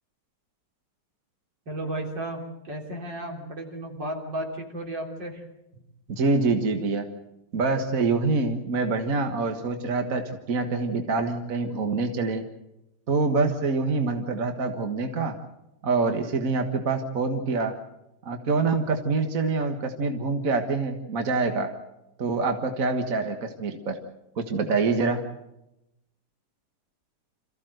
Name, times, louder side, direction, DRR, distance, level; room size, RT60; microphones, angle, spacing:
voice 1, 1.7-5.4 5.7-5.8, right 1 dB, 80° right, 1 dB, 4.2 m, -34 dB
voice 2, 6.1-7.1 7.5-10.2 10.5-12.4 13.1-15.3 15.8-17.7 18.2-21.7 22.2-24.0 24.4-25.2, right 3 dB, 50° right, 5 dB, 1.9 m, -25 dB
27.0 x 15.0 x 7.9 m, 0.90 s
omnidirectional pair, 1.9 m